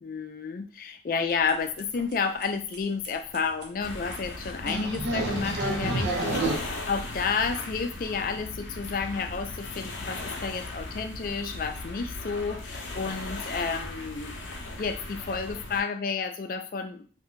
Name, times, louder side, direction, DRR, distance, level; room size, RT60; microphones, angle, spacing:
voice 1, 0.0-17.1, left 5 dB, 50° left, 7 dB, 0.3 m, -31 dB
sound 1, 1.5-1.6 1.8-2.1 2.4-2.5 2.7-2.8 3.0-3.1 3.3-3.6 4.1-4.2 4.7-6.6, right 2 dB, 70° right, 0.7 m, -29 dB
sound 2, 3.8-15.8, left 2 dB, 90° left, 0.6 m, -38 dB
2.6 x 2.2 x 3.7 m, 0.41 s
head